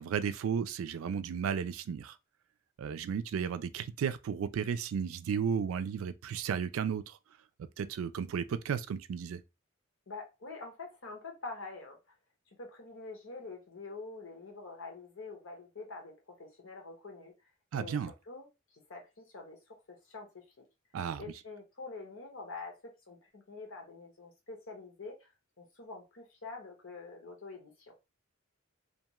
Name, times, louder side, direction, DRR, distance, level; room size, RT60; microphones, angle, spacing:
voice 1, 0.0-2.2 2.8-7.2 7.6-9.4 17.7-18.1 20.9-21.2, right 7 dB, 85° right, 0.3 m, -34 dB
voice 2, 10.1-12.0 12.6-17.3 17.7-17.9 18.3-18.5 18.9-19.6 19.9-20.4 21.2-25.3 25.6-27.9, left 3 dB, 75° left, 0.9 m, -46 dB
2.5 x 2.3 x 2.9 m
head